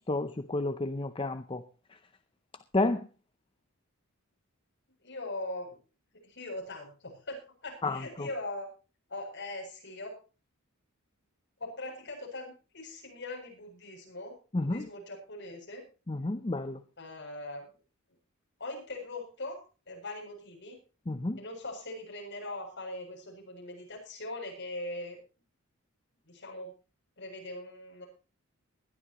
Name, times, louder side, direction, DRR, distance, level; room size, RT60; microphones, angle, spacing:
voice 1, 0.1-1.6 2.7-3.0 7.8-8.3 14.5-14.9 16.1-16.8 21.1-21.4, left 2 dB, 25° left, 0.6 m, -31 dB
voice 2, 5.0-5.8 6.2-8.7 9.1-10.2 11.6-15.8 17.0-17.7 18.6-20.8 21.4-25.2 26.3-26.7 27.2-28.0, left 2 dB, 55° left, 7.5 m, -41 dB
20.5 x 12.5 x 3.0 m
head